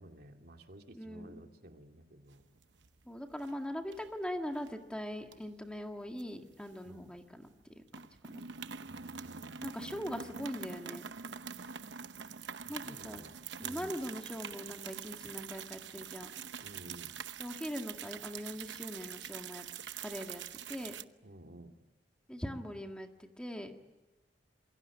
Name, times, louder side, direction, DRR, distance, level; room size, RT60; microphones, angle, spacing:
voice 1, 0.0-2.4 6.8-7.1 8.8-10.4 12.8-13.9 16.6-17.1 21.2-21.8, right 1 dB, 60° right, 4 dB, 2.6 m, -54 dB
voice 2, 0.9-1.4 3.1-7.5 7.8-7.9 8.3-8.4 9.6-11.0 12.7-13.2 13.6-16.3 17.4-19.6 20.0-20.4 20.7-20.9 22.3-23.7, equal, 5° left, 4 dB, 1.9 m, -41 dB
sound 1, 2.4-3.0 3.3-3.5 3.9-4.7 5.3-7.2 7.5-7.6 7.9-21.0, right 7 dB, 80° right, 0.9 m, -45 dB
27.0 x 23.0 x 8.8 m, 1.0 s
head